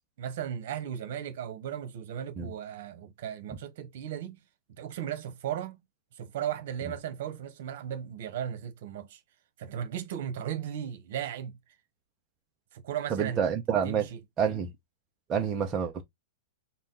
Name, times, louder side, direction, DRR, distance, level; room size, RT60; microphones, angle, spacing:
voice 1, 0.2-4.4 4.8-5.8 6.1-9.2 9.6-11.6 12.7-13.4 13.8-14.2, right 9 dB, 60° right, 1.2 m, -36 dB
voice 2, 13.1-14.1 14.4-14.7 15.3-16.0, right 7 dB, 20° right, 0.6 m, -28 dB
4.1 x 2.3 x 3.8 m
supercardioid pair, 160°, 0 cm